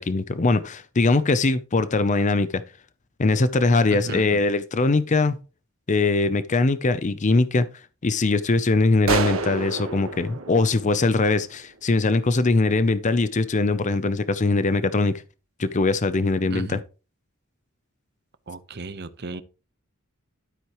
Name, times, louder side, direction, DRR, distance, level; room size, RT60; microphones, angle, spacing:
voice 1, 0.0-2.6 3.2-5.4 5.9-7.7 8.0-15.1 15.6-16.8, left 3 dB, 35° left, 0.6 m, -21 dB
voice 2, 4.0-4.4 16.5-16.8 18.5-19.4, right 3 dB, 55° right, 0.9 m, -35 dB
sound 1, 9.1-11.6, right 4 dB, 85° right, 1.5 m, -29 dB
12.5 x 8.0 x 3.1 m
head